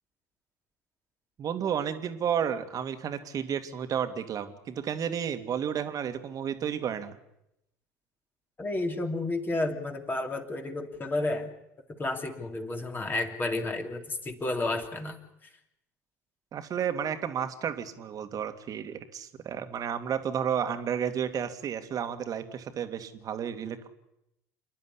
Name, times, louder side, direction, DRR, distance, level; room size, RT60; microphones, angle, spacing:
voice 1, 1.4-7.2 16.5-23.9, right 8 dB, 45° right, 8 dB, 2.2 m, -32 dB
voice 2, 8.6-11.5 12.0-15.2, left 2 dB, 25° left, 3 dB, 3.1 m, -31 dB
28.5 x 11.0 x 9.9 m, 0.86 s
hypercardioid pair, 70°, 9 cm